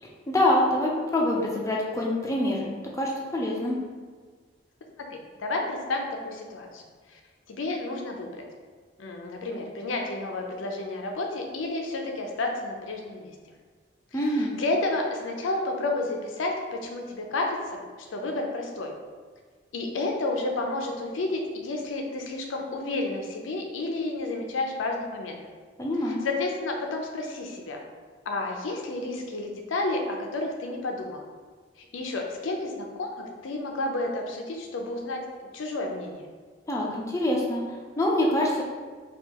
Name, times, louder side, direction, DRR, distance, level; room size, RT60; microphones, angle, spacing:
voice 1, 0.0-2.6 2.9-3.8 14.1-14.5 25.8-26.2 36.7-38.6, left 1 dB, 15° left, -3 dB, 0.4 m, -25 dB
voice 2, 5.0-6.8 7.1-7.2 7.5-8.5 9.0-13.3 14.1-17.8 18.1-18.9 19.7-25.4 26.0-27.8 28.3-31.2 31.8-36.3, left 2 dB, 85° left, 2 dB, 0.5 m, -31 dB
4.4 x 2.4 x 2.9 m, 1.5 s
head